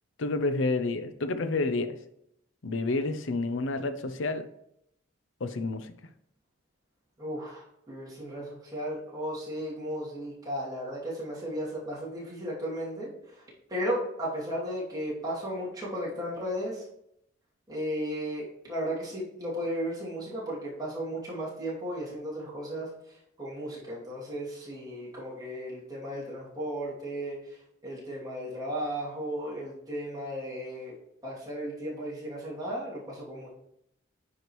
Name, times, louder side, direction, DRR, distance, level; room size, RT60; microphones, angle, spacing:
voice 1, 0.2-2.0 2.6-4.5 5.4-5.9, left 3 dB, 75° left, 10 dB, 0.6 m, -29 dB
voice 2, 7.2-16.9 17.7-30.9 31.2-33.5, equal, 20° right, -7 dB, 2.6 m, -35 dB
9.5 x 5.0 x 3.1 m, 0.77 s
head